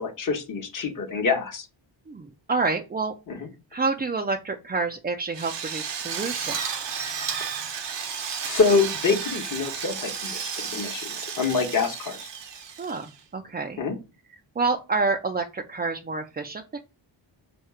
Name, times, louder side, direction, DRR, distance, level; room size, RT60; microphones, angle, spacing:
voice 1, 0.0-1.7 3.3-3.5 8.5-12.2 13.8-14.0, left 4 dB, 40° left, 3 dB, 0.9 m, -26 dB
voice 2, 2.1-3.1 3.7-6.6 12.8-13.8 14.6-16.8, right 4 dB, 25° right, 3 dB, 0.3 m, -28 dB
Drill, 5.3-13.2, right 6 dB, 60° right, 0.7 m, -33 dB
4.3 x 2.3 x 4.7 m, 0.29 s
wide cardioid pair, 85°, 48 cm